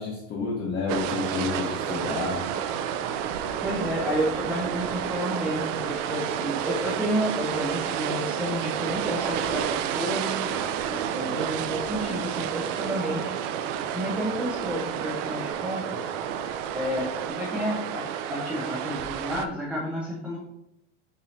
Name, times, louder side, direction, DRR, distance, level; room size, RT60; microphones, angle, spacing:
voice 1, 0.0-2.4, left 4 dB, 30° left, -4 dB, 0.7 m, -30 dB
sound 1, 0.9-19.5, right 9 dB, 90° right, 0.5 m, -30 dB
voice 2, 3.5-13.3 13.9-16.0 16.7-18.0 18.3-20.4, equal, 5° right, -5 dB, 0.3 m, -31 dB
5.5 x 2.7 x 3.1 m, 0.85 s
supercardioid pair, 155°, 36 cm